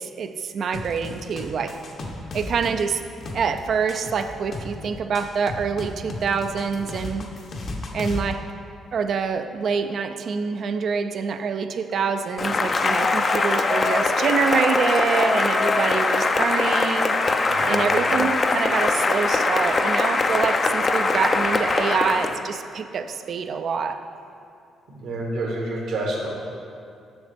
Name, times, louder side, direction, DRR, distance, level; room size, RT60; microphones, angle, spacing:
voice 1, 0.0-1.8 2.3-3.0 3.3-7.3 7.9-8.4 8.9-17.1 17.7-24.0, right 6 dB, 60° right, 8 dB, 0.4 m, -26 dB
sound 1, 0.7-8.3, left 2 dB, 55° left, 0.8 m, -35 dB
Cheering / Applause, 12.4-22.4, left 3 dB, 35° left, 0.4 m, -22 dB
voice 2, 17.4-17.8 24.9-26.3, right 2 dB, 75° right, -2 dB, 1.5 m, -28 dB
7.0 x 6.3 x 3.4 m, 2.4 s
cardioid pair, 90°, 0 cm